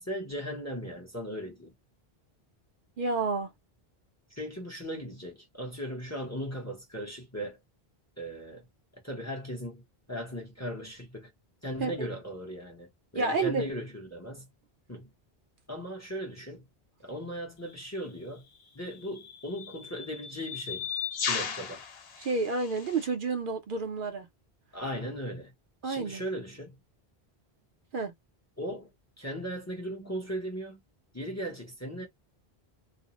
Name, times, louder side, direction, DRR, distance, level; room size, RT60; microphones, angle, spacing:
voice 1, 0.0-1.7 4.3-7.6 8.2-8.7 8.9-11.3 11.6-14.5 14.9-15.1 15.7-16.6 17.0-18.5 18.7-20.9 21.3-21.8 24.7-25.5 25.8-26.8 28.6-28.9 29.2-30.8 31.1-32.1, equal, 20° left, 0.6 m, -37 dB
voice 2, 3.0-3.5 11.8-11.9 13.1-13.6 22.2-24.3 25.8-26.2 27.9-28.1, right 3 dB, 60° right, 0.7 m, -29 dB
sound 1, 17.7-17.9 18.9-23.1, left 7 dB, 75° left, 0.9 m, -36 dB
2.4 x 2.0 x 2.8 m
omnidirectional pair, 1.0 m